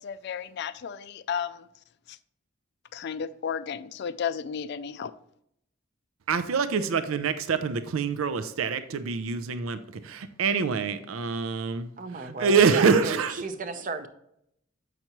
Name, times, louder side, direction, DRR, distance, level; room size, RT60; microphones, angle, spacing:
voice 1, 0.0-1.7 2.9-5.1, left 7 dB, 55° left, 0.3 m, -33 dB
voice 2, 6.3-11.9 12.2-13.3, right 5 dB, 90° right, 0.5 m, -25 dB
voice 3, 12.0-14.1, right 3 dB, 40° right, 0.6 m, -34 dB
7.8 x 5.8 x 3.0 m
head